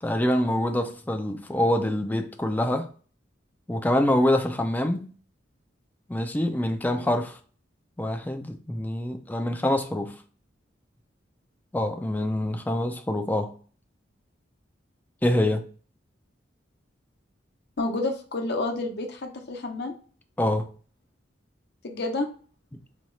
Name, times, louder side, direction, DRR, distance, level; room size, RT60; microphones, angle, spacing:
voice 1, 0.0-2.9 3.7-5.1 6.1-7.4 8.0-10.2 11.7-13.5 15.2-15.7 20.4-20.7, left 1 dB, 10° left, 0.4 m, -25 dB
voice 2, 17.8-19.9 21.8-22.3, left 2 dB, 60° left, 0.8 m, -29 dB
4.2 x 2.3 x 3.0 m
head